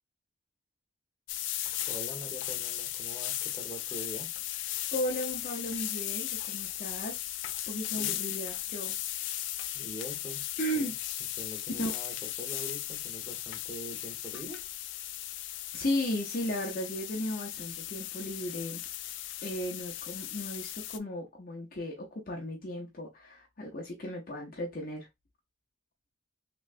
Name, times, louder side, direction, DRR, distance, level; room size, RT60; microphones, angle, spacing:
sound 1, 1.3-21.0, left 13 dB, 70° left, 0.3 m, -37 dB
voice 1, 1.9-4.3 7.9-8.2 9.7-10.4 10.7-10.9 11.4-14.6, equal, 15° left, 1.1 m, -44 dB
voice 2, 4.9-7.2 7.7-9.0 10.6-11.0 11.8-11.9 15.7-18.8 19.4-25.1, equal, 45° left, 0.7 m, -35 dB
3.2 x 3.0 x 2.5 m
head